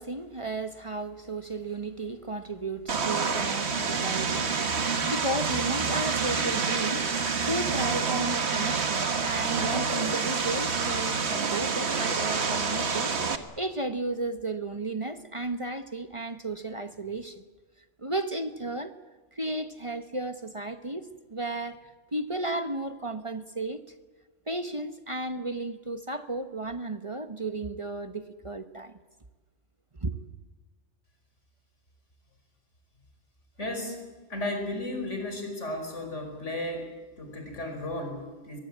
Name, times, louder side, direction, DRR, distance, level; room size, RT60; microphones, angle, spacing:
voice 1, 0.0-17.4 18.0-18.9 19.3-23.8 24.5-28.9 30.0-30.2, right 2 dB, 30° right, 1.1 m, -34 dB
Vehicle, 2.9-13.4, right 5 dB, 65° right, 1.7 m, -28 dB
voice 2, 33.6-34.0 34.3-36.9 37.2-38.6, left 1 dB, 85° left, 5.5 m, -34 dB
22.5 x 22.5 x 8.7 m
omnidirectional pair, 1.2 m